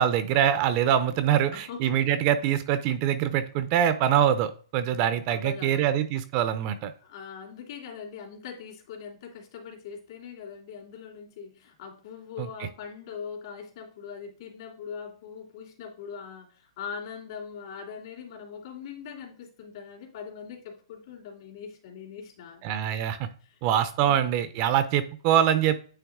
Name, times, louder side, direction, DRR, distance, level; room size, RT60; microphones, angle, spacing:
voice 1, 0.0-6.9 12.4-12.5 22.6-23.3 23.6-25.8, right 10 dB, 35° right, 11 dB, 0.6 m, -24 dB
voice 2, 1.5-2.0 5.3-6.0 7.0-22.8 23.4-23.6, left 6 dB, 50° left, -2 dB, 2.7 m, -41 dB
9.2 x 3.4 x 3.6 m, 0.41 s
hypercardioid pair, 145°, 3 cm